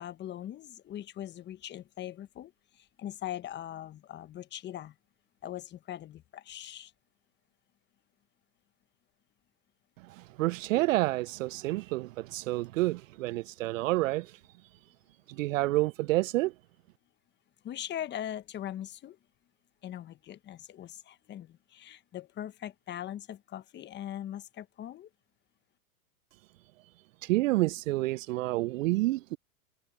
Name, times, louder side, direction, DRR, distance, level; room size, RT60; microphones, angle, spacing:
voice 1, 0.0-4.9 5.4-6.9 17.6-19.2 19.8-25.1, left 11 dB, 25° left, 1.2 m, -41 dB
voice 2, 10.2-14.3 15.3-16.5 27.2-29.4, right 19 dB, 60° right, 0.5 m, -29 dB
hypercardioid pair, 120°, 45 cm